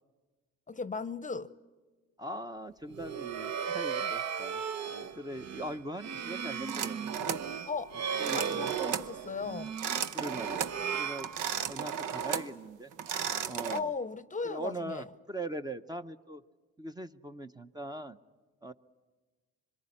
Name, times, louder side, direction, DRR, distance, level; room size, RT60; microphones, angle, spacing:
voice 1, 0.7-1.5 7.7-7.9 8.3-9.7 13.7-15.1, left 4 dB, 25° left, 0.8 m, -36 dB
voice 2, 2.2-4.6 5.1-7.4 8.2-8.4 8.8-9.0 10.1-11.3 11.7-12.9 13.5-13.9 14.4-16.4 16.8-18.2 18.6-18.7, right 1 dB, 15° right, 0.7 m, -40 dB
sound 1, 2.9-11.9, right 7 dB, 60° right, 1.1 m, -36 dB
sound 2, 6.7-7.5 8.2-9.1 9.7-10.8 11.2-12.5 12.9-13.8, right 8 dB, 90° right, 0.9 m, -34 dB
26.0 x 22.5 x 9.9 m
cardioid pair, 90°, 30 cm